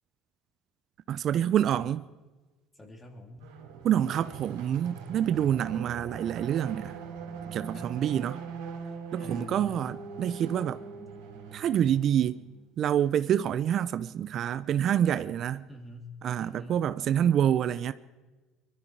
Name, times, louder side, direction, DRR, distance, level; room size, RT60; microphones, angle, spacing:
voice 1, 1.1-2.0 3.8-7.0 7.5-8.4 9.1-10.8 11.5-12.4 12.8-15.6 16.2-17.9, right 10 dB, 55° right, 0.5 m, -27 dB
voice 2, 2.7-3.5 5.4-5.6 7.7-8.1 9.2-9.9 15.7-16.1 16.4-16.8, left 2 dB, 20° left, 3.2 m, -46 dB
sound 1, 3.4-12.6, right 6 dB, 85° right, 3.9 m, -42 dB
22.5 x 13.5 x 4.8 m
hypercardioid pair, 75°, 0 cm